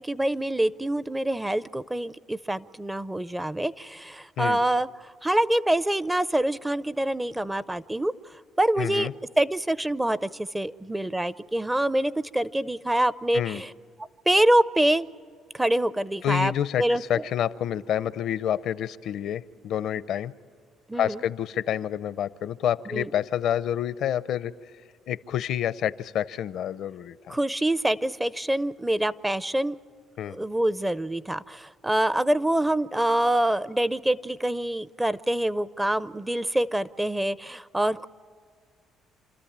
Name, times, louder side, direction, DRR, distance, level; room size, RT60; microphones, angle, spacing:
voice 1, 0.0-8.1 8.6-9.1 9.4-13.7 14.3-15.1 15.5-16.5 16.8-17.0 20.9-21.2 22.9-23.1 27.3-29.8 30.3-38.1, right 1 dB, 10° right, 18 dB, 0.5 m, -25 dB
voice 2, 8.8-9.1 13.3-13.6 16.2-20.3 21.0-24.5 25.1-27.3 30.2-30.4, left 10 dB, 70° left, 16 dB, 0.6 m, -28 dB
28.0 x 13.5 x 8.7 m, 2.1 s
cardioid pair, 100°, 0 cm